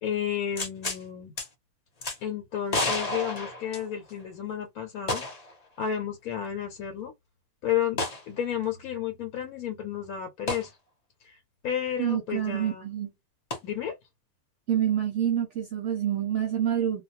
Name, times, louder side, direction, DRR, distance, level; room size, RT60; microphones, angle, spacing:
voice 1, 0.0-1.3 2.2-5.2 5.8-7.1 7.6-8.0 8.3-10.7 11.2-11.4 11.6-12.9 13.6-14.0, left 9 dB, 75° left, 1.0 m, -32 dB
sound 1, 0.6-1.0 1.4-1.5 2.0-2.2 2.7-4.2 5.1-5.5 5.8-5.9 8.0-8.2 10.5-10.7 13.5-13.6, left 2 dB, 35° left, 0.7 m, -30 dB
voice 2, 12.0-13.1 14.7-17.0, right 10 dB, 65° right, 0.8 m, -27 dB
2.3 x 2.2 x 2.7 m
omnidirectional pair, 1.5 m